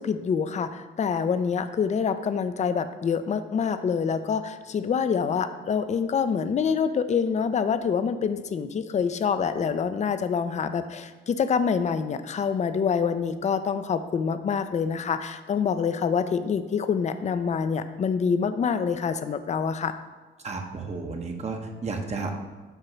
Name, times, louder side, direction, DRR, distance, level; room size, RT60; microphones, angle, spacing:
voice 1, 0.0-19.9, left 6 dB, 35° left, 11 dB, 0.5 m, -26 dB
voice 2, 20.4-22.3, right 4 dB, 35° right, 3 dB, 0.8 m, -32 dB
8.0 x 2.9 x 5.9 m, 1.3 s
cardioid pair, 90°, 20 cm